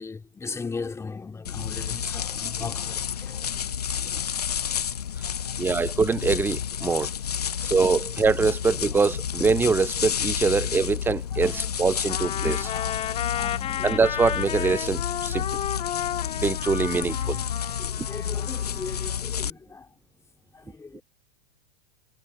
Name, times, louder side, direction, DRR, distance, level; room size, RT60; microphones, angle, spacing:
voice 1, 0.0-4.7 5.2-5.7 6.8-8.1 8.4-8.5 10.4-10.8 11.3-12.1 12.6-14.2 17.2-19.9 20.5-21.0, left 4 dB, 15° left, 2.9 m, -40 dB
sound 1, 1.4-19.5, left 8 dB, 80° left, 0.6 m, -30 dB
voice 2, 5.6-7.1 7.6-12.7 13.8-15.5 16.4-17.4, right 4 dB, 10° right, 0.6 m, -24 dB
Trumpet, 12.1-19.2, left 11 dB, 30° left, 2.6 m, -33 dB
figure-of-eight pair, 90°, 20 cm